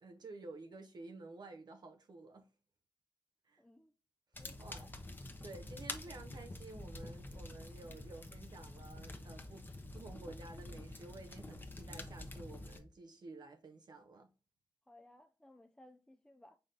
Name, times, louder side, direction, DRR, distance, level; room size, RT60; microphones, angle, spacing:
voice 1, 0.0-2.5 3.5-3.6 4.6-4.9 5.4-14.3, right 3 dB, 60° right, 0.5 m, -52 dB
voice 2, 3.6-3.9 4.4-4.9 14.9-16.6, left 1 dB, 10° left, 0.4 m, -61 dB
sound 1, 4.3-12.8, left 2 dB, 25° left, 0.8 m, -48 dB
5.4 x 3.7 x 2.7 m
wide cardioid pair, 85°, 8 cm